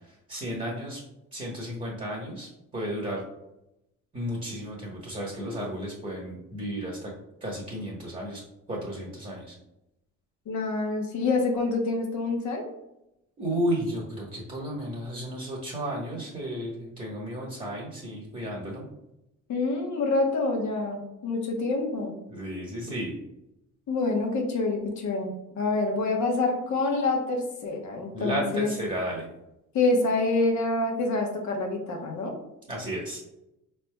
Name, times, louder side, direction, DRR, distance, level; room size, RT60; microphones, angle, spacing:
voice 1, 0.3-1.0 1.3-3.2 4.1-7.1 7.4-8.4 8.7-9.5 13.4-18.9 22.3-23.1 28.1-29.3 32.7-33.3, equal, 25° right, -3 dB, 1.2 m, -33 dB
voice 2, 10.5-12.6 19.5-22.1 23.9-28.7 29.7-32.3, left 3 dB, 70° left, 1 dB, 1.0 m, -27 dB
4.1 x 3.4 x 2.2 m, 0.87 s
cardioid pair, 90°, 30 cm